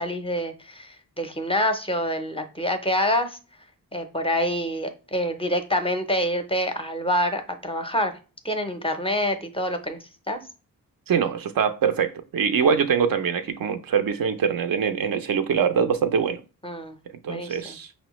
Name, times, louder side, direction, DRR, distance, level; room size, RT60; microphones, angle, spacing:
voice 1, 0.0-3.4 3.9-8.1 8.4-10.4 16.6-17.0 17.3-17.8, equal, 15° left, 0.5 m, -26 dB
voice 2, 11.1-16.4 17.2-17.9, right 7 dB, 65° right, 0.5 m, -23 dB
5.4 x 2.0 x 3.0 m
wide cardioid pair, 85°, 37 cm